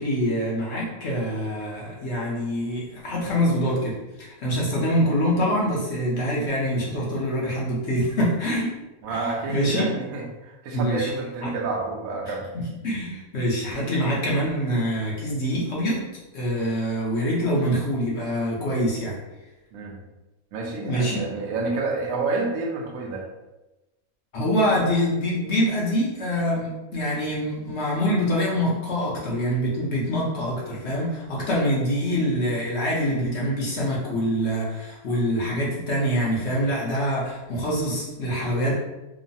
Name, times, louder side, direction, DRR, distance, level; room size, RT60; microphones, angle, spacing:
voice 1, 0.0-8.8 9.1-9.9 10.7-11.1 11.4-11.5 12.5-16.0 16.3-19.2 20.8-21.2 24.3-38.7, equal, 55° left, -5 dB, 0.9 m, -25 dB
voice 2, 9.0-12.5 19.7-20.0 20.5-23.3, right 3 dB, 70° right, -1 dB, 1.0 m, -29 dB
3.1 x 2.0 x 2.6 m, 1.0 s
omnidirectional pair, 1.5 m